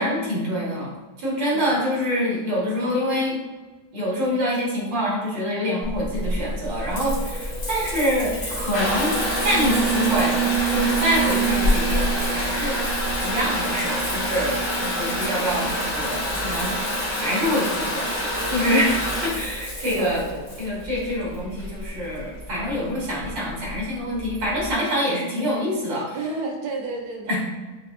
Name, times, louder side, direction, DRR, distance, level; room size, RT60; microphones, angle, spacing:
voice 1, 0.0-3.4 3.9-9.1 9.4-10.4 10.7-12.8 13.2-16.8 17.2-20.2 20.6-26.2 27.3-27.4, equal, 90° right, -6 dB, 2.1 m, -25 dB
Water tap faucet / Bathtub (filling or washing) / Trickle dribble, 5.8-24.7, right 1 dB, 35° left, 0.7 m, -26 dB
voice 2, 20.0-20.5 26.1-27.4, right 2 dB, 75° right, 2 dB, 1.1 m, -31 dB
6.7 x 2.4 x 2.4 m, 1.3 s
omnidirectional pair, 2.0 m